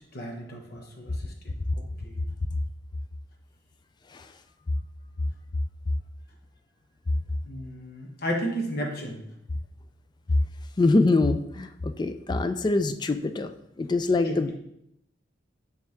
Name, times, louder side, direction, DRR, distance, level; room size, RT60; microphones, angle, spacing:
voice 1, 0.1-1.3 2.0-2.2 7.5-9.2 14.2-14.6, equal, 55° left, 1 dB, 1.2 m, -33 dB
voice 2, 10.8-13.5 13.8-14.6, left 3 dB, 25° left, 9 dB, 0.3 m, -24 dB
8.9 x 3.4 x 3.5 m, 0.77 s
head